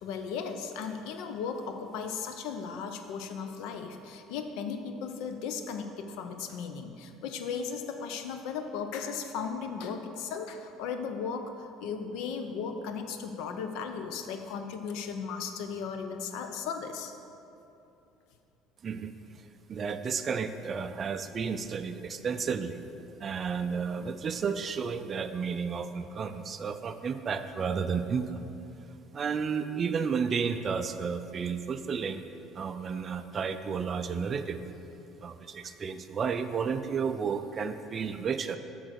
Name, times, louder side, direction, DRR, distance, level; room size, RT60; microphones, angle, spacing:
voice 1, 0.0-17.1, left 6 dB, 75° left, 6 dB, 0.6 m, -36 dB
voice 2, 19.7-22.8 23.2-28.4 29.1-32.2 32.6-34.6 35.2-38.6, right 6 dB, 30° right, 9 dB, 0.3 m, -32 dB
7.7 x 3.9 x 6.4 m, 2.8 s
cardioid pair, 145°, 0 cm